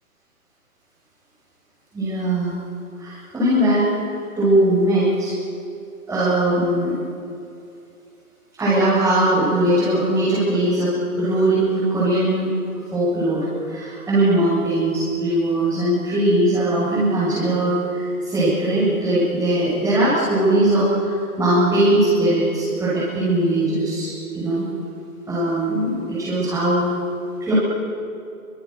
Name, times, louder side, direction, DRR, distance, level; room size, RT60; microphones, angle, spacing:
voice 1, 1.9-2.5 3.0-3.9 4.3-5.3 6.1-7.0 8.6-12.5 12.9-24.7 25.3-26.9 27.4-27.5, right 1 dB, 5° right, -12 dB, 7.6 m, -20 dB
29.5 x 26.0 x 6.9 m, 2.5 s
hypercardioid pair, 150°, 45 cm